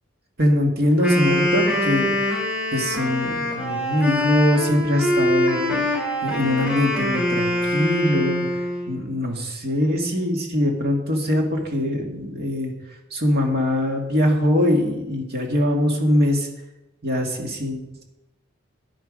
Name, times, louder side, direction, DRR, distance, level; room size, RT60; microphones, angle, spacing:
voice 1, 0.4-2.4 2.7-5.8 6.2-8.5 8.9-12.7 13.1-16.5 17.0-18.0, left 1 dB, 50° right, 1 dB, 2.1 m, -22 dB
Wind instrument woodwind instrument, 0.9-8.9, left 1 dB, 5° right, 4.4 m, -23 dB
10.5 x 9.3 x 5.1 m, 0.94 s
head